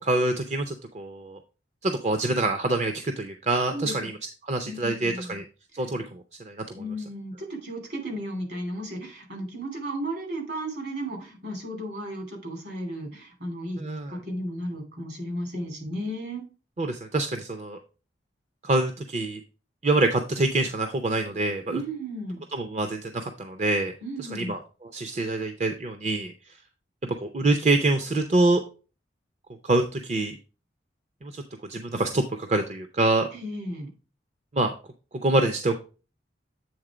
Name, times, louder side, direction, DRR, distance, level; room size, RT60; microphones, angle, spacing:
voice 1, 0.0-1.4 1.8-4.1 4.5-5.4 5.7-6.6 13.8-14.1 16.8-17.8 18.6-19.4 19.8-21.8 22.5-23.9 24.3-24.6 24.9-26.3 27.2-28.6 29.6-30.4 31.2-31.4 31.7-33.3 34.5-34.7 35.2-35.8, right 2 dB, 35° right, 6 dB, 0.5 m, -25 dB
voice 2, 3.7-4.1 4.6-5.4 6.7-16.4 21.7-22.4 24.0-24.6 33.3-33.9, right 1 dB, 65° right, 1 dB, 2.9 m, -34 dB
7.9 x 3.7 x 4.9 m, 0.34 s
head